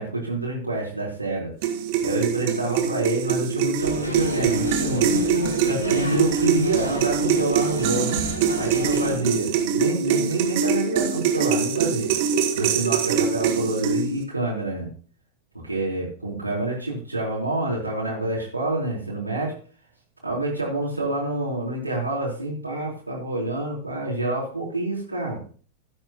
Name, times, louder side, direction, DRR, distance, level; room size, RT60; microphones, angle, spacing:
voice 1, 0.0-1.5 2.0-5.2 5.6-8.2 8.6-12.1 12.5-14.9 15.6-19.5 20.2-25.4, right 2 dB, 85° right, -4 dB, 4.0 m, -27 dB
sound 1, 1.6-14.2, right 7 dB, 45° right, 1.7 m, -24 dB
sound 2, 3.8-9.1, left 1 dB, 80° left, 2.9 m, -31 dB
15.0 x 8.7 x 3.0 m, 0.41 s
figure-of-eight pair, 90°, 0 cm